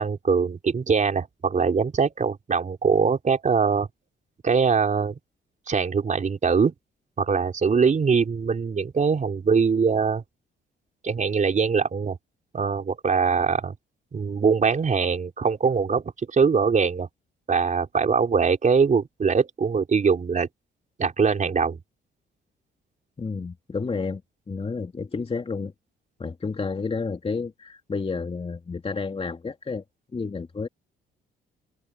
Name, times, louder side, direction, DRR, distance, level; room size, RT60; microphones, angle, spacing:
voice 1, 0.0-3.9 4.4-5.1 5.7-6.7 7.2-10.2 11.0-12.2 12.5-13.7 14.1-17.1 17.5-20.5 21.0-21.8, right 5 dB, 40° right, 4.1 m, -22 dB
voice 2, 23.2-24.2 24.5-25.7 26.2-29.8 30.1-30.7, left 4 dB, 30° left, 2.7 m, -30 dB
cardioid pair, 90°, 20 cm